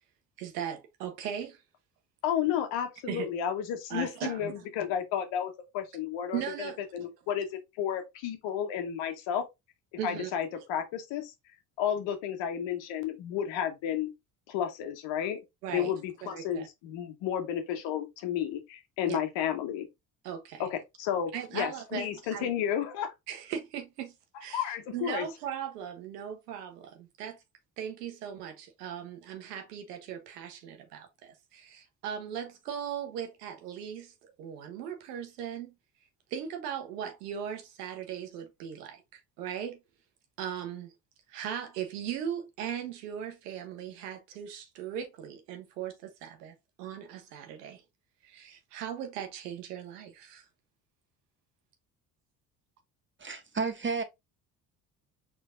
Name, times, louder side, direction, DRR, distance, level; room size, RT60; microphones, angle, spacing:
voice 1, 0.4-1.6 3.1-3.3 3.9-4.6 6.3-6.8 10.0-10.3 15.6-15.9 16.2-16.7 19.1-19.2 20.2-20.7 21.3-22.5 23.3-24.1 24.4-27.4 27.8-35.7 36.3-39.8 40.4-40.9 41.3-47.8 48.2-50.4, right 9 dB, 90° right, 1.1 m, -38 dB
voice 2, 2.2-9.4 10.0-11.3 11.8-14.1 14.5-15.4 15.7-19.9 20.6-23.1 24.5-25.3, left 9 dB, 70° left, 1.4 m, -32 dB
voice 3, 53.2-54.0, right 5 dB, 25° right, 1.4 m, -31 dB
4.7 x 3.8 x 2.6 m
hypercardioid pair, 60°, 46 cm